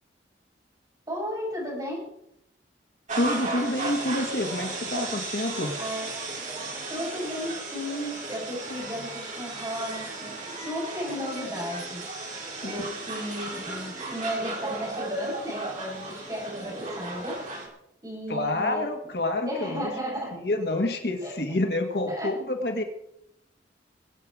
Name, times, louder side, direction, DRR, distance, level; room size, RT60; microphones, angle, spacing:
voice 1, 1.1-2.1 5.8-6.1 6.9-12.0 12.6-17.4 18.0-18.8 19.4-20.4 21.2-21.3 22.1-22.3, equal, 20° right, -4 dB, 7.3 m, -34 dB
voice 2, 3.1-5.8 12.6-12.8 18.3-19.9 20.3-22.8, left 2 dB, 65° left, 4 dB, 2.0 m, -28 dB
sound 1, 3.1-17.7, right 3 dB, 45° right, 4.0 m, -35 dB
22.5 x 9.0 x 4.9 m, 0.80 s
head